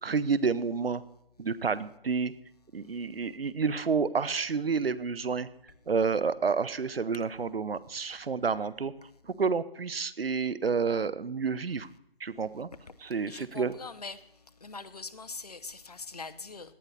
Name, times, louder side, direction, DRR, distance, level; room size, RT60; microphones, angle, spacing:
voice 1, 0.0-1.0 1.4-2.3 2.7-5.5 5.9-8.9 9.2-11.9 12.2-12.7 13.0-13.7, right 5 dB, 70° right, 0.9 m, -29 dB
voice 2, 13.3-14.2 14.6-16.7, left 4 dB, 40° left, 0.8 m, -42 dB
17.5 x 11.0 x 4.1 m
figure-of-eight pair, 165°, 30 cm